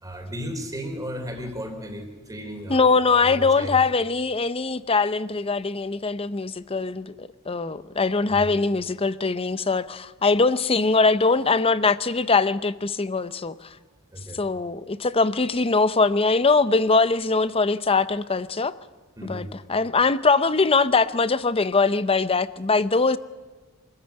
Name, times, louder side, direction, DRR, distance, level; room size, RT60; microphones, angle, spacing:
voice 1, 0.0-3.8 8.2-8.5 10.7-11.0 14.1-14.4 19.2-19.5, equal, 15° right, 3.2 m, -35 dB
voice 2, 2.7-13.6 14.3-18.7 19.2-23.2, left 4 dB, 25° left, 0.7 m, -22 dB
25.0 x 14.0 x 9.0 m
head